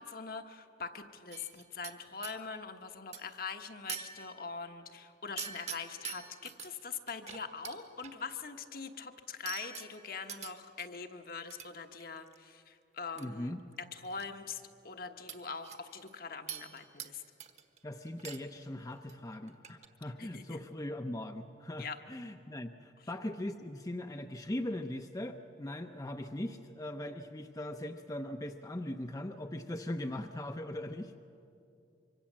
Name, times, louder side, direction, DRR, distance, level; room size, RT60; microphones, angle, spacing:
voice 1, 0.0-13.5 13.8-17.2 20.2-20.6 21.8-22.0, left 5 dB, 55° left, 6 dB, 1.2 m, -43 dB
sound 1, 1.3-2.4 3.1-3.4 3.9-4.6 5.4-6.7 7.1-8.1 9.5-10.9 11.5-11.7 12.0-12.4 13.2-13.3 13.6-14.2 14.5-14.6 15.3-16.1 16.5-17.1 17.4-17.8 18.1-18.6 18.9-19.1 19.5-19.9, right 8 dB, 40° right, 1.3 m, -45 dB
voice 2, 13.2-13.6 17.8-31.2, left 1 dB, 20° left, 6 dB, 0.7 m, -40 dB
25.0 x 24.5 x 7.5 m, 2.6 s
head